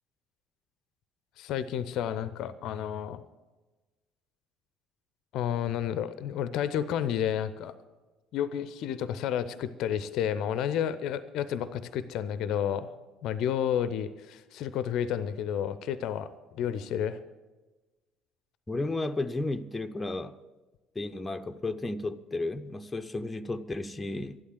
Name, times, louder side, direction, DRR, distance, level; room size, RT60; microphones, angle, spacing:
voice 1, 1.4-3.2 5.3-7.7 8.3-12.9 13.2-17.2, left 9 dB, 55° left, 15 dB, 0.6 m, -31 dB
voice 2, 18.7-20.4 20.9-24.4, left 2 dB, 15° left, 8 dB, 0.7 m, -33 dB
12.5 x 11.5 x 7.5 m, 1.2 s
figure-of-eight pair, 55°, 0 cm